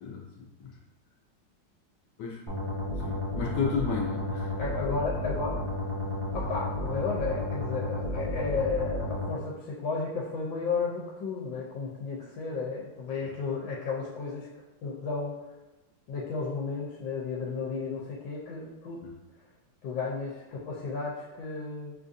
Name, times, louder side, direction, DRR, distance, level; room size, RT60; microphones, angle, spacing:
voice 1, 0.0-0.7 2.2-2.4 3.0-4.5 13.2-13.3 19.0-19.1, left 5 dB, 70° left, -2 dB, 1.1 m, -33 dB
sound 1, 2.5-9.3, left 1 dB, 20° right, 0.7 m, -32 dB
voice 2, 4.6-5.7 6.3-14.5 14.8-15.3 16.1-19.0 19.8-21.9, left 4 dB, 90° left, -3 dB, 1.3 m, -33 dB
5.0 x 2.4 x 2.6 m, 1.1 s
omnidirectional pair, 2.1 m